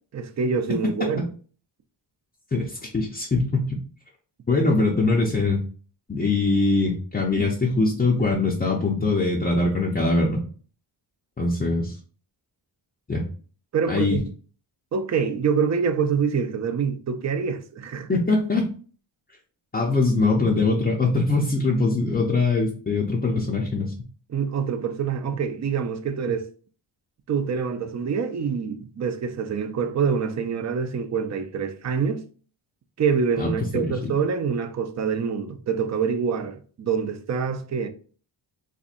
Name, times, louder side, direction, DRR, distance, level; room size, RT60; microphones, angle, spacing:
voice 1, 0.1-1.2 13.7-14.2 14.9-18.1 24.3-26.5 27.3-32.2 33.0-37.9, right 6 dB, 40° right, 0.4 m, -26 dB
voice 2, 2.5-3.8 4.5-5.6 6.1-10.4 11.4-12.0 13.1-13.2 13.9-14.2 18.1-18.7 19.7-23.9 33.4-34.1, left 3 dB, 20° left, 0.6 m, -22 dB
4.2 x 2.6 x 2.4 m
wide cardioid pair, 125°, 47 cm